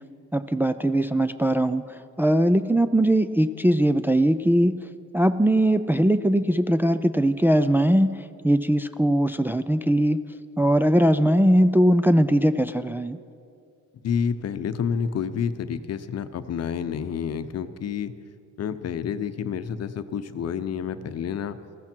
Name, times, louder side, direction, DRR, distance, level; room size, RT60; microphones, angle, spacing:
voice 1, 0.3-1.8 2.2-4.8 5.1-8.1 8.4-10.2 10.6-13.2, right 1 dB, 5° right, 9 dB, 0.4 m, -20 dB
voice 2, 14.0-18.1 18.6-21.6, left 7 dB, 55° left, 11 dB, 0.8 m, -29 dB
19.5 x 14.5 x 4.5 m, 2.4 s
cardioid pair, 90°, 30 cm